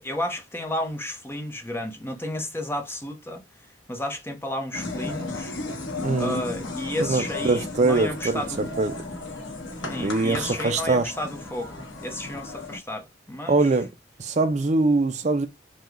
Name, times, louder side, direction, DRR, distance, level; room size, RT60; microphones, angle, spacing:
voice 1, 0.0-3.4 3.9-5.5 6.1-8.7 9.9-13.8, left 1 dB, 10° left, 0.8 m, -32 dB
sound 1, 4.7-12.8, left 2 dB, 90° left, 1.3 m, -35 dB
voice 2, 6.0-6.4 7.0-8.9 9.8-11.1 13.5-13.9 14.2-15.5, right 3 dB, 40° right, 0.4 m, -23 dB
5.8 x 2.2 x 3.2 m
head